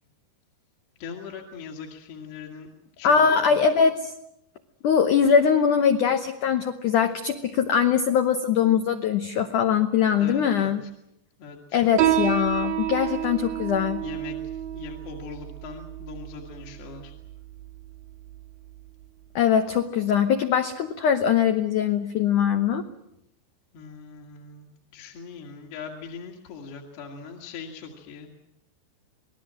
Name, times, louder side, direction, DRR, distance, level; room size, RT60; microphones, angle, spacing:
voice 1, 1.0-3.5 10.1-10.9 11.4-11.8 14.0-17.1 23.7-28.3, left 5 dB, 65° left, 0 dB, 3.8 m, -41 dB
voice 2, 3.0-4.1 4.8-10.8 11.7-14.0 19.3-22.8, left 7 dB, 80° left, 7 dB, 1.8 m, -22 dB
Piano, 12.0-19.0, right 11 dB, 75° right, 3.6 m, -30 dB
27.0 x 19.5 x 7.6 m, 0.81 s
omnidirectional pair, 5.1 m